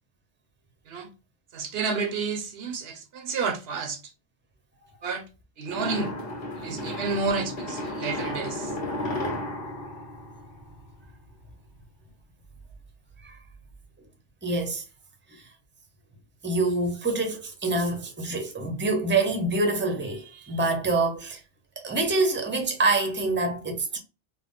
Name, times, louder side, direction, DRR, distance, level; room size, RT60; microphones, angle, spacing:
voice 1, 1.5-4.0 5.0-5.2 5.6-6.1 6.6-8.7, right 4 dB, 75° right, 0.9 m, -30 dB
sound 1, 5.7-11.0, left 1 dB, 65° left, 1.4 m, -33 dB
voice 2, 14.4-14.8 15.3-15.4 16.4-21.4 21.8-24.0, right 3 dB, 15° right, 0.7 m, -26 dB
3.9 x 2.0 x 3.6 m
omnidirectional pair, 1.0 m